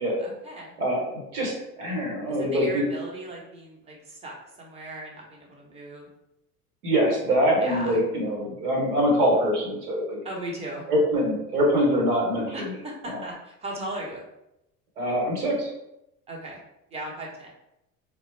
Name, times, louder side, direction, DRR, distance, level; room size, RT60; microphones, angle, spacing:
voice 1, 0.2-0.7 2.3-6.1 7.6-8.0 10.2-10.9 12.5-14.2 16.3-16.6 16.9-17.5, right 1 dB, 15° right, -3 dB, 0.8 m, -37 dB
voice 2, 0.8-2.8 6.8-10.2 10.9-12.5 13.1-13.2 15.0-15.7, equal, 75° right, -1 dB, 1.2 m, -24 dB
3.8 x 2.1 x 3.1 m, 0.85 s
figure-of-eight pair, 70°, 45 cm